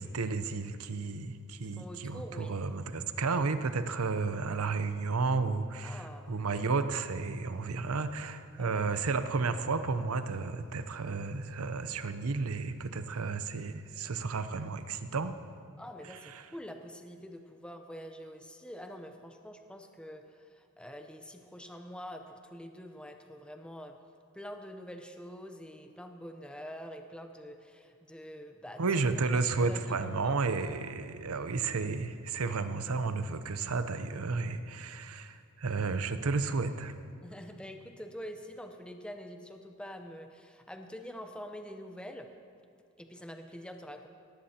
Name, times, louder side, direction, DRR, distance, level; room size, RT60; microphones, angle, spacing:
voice 1, 0.0-15.3 16.3-16.4 28.8-36.9, right 4 dB, 85° right, 10 dB, 0.7 m, -32 dB
voice 2, 1.7-2.6 5.8-6.5 8.6-8.8 15.8-24.0 24.3-28.8 29.3-30.4 37.2-42.3 43.0-44.1, equal, 5° left, 5 dB, 0.7 m, -46 dB
18.0 x 14.5 x 2.9 m, 2.4 s
head